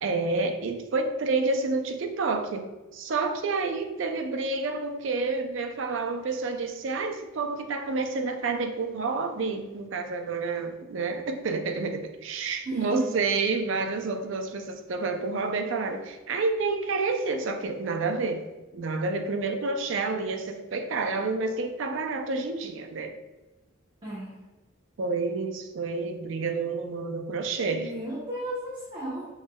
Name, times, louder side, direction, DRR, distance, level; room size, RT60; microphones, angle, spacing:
voice 1, 0.0-2.7 2.9-18.4 18.7-23.1 25.0-27.9, right 3 dB, 65° right, 6 dB, 0.4 m, -29 dB
voice 2, 12.6-13.1 24.0-24.4 27.7-29.3, right 1 dB, 25° right, -8 dB, 0.9 m, -33 dB
6.3 x 3.1 x 2.2 m, 1.1 s
head